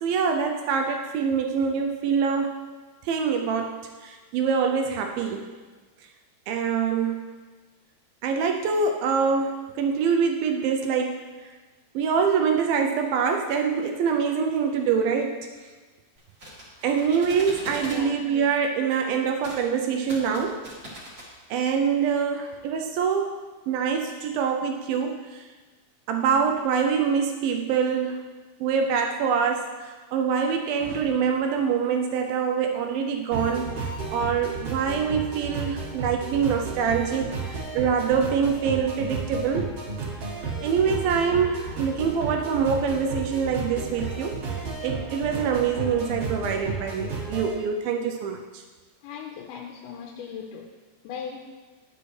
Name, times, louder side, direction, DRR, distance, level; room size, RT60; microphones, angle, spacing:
voice 1, 0.0-2.6 3.0-5.5 6.5-7.3 8.2-11.3 12.0-15.4 16.8-20.6 21.5-25.4 26.1-28.3 28.6-39.8 40.6-44.4 44.8-48.6, right 6 dB, 85° right, 3 dB, 2.1 m, -25 dB
sound 1, 16.2-18.0 19.4-19.6 19.9-21.3, right 1 dB, 35° right, 1.6 m, -41 dB
sound 2, 33.3-47.5, right 4 dB, 50° right, 2.0 m, -33 dB
voice 2, 49.0-50.6 51.0-51.5, left 7 dB, 85° left, 1 dB, 2.6 m, -38 dB
10.5 x 7.9 x 3.2 m, 1.3 s
omnidirectional pair, 4.7 m